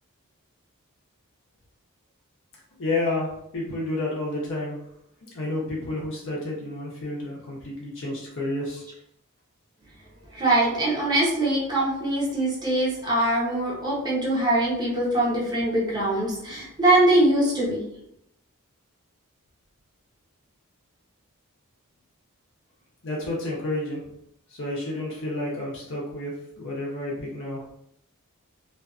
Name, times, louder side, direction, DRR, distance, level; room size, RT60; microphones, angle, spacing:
voice 1, 2.8-4.8 5.2-8.9 23.0-24.0 24.5-27.6, left 2 dB, 60° left, -5 dB, 0.7 m, -30 dB
voice 2, 10.3-17.8, right 1 dB, 20° right, -6 dB, 0.7 m, -22 dB
2.4 x 2.4 x 2.3 m, 0.76 s
head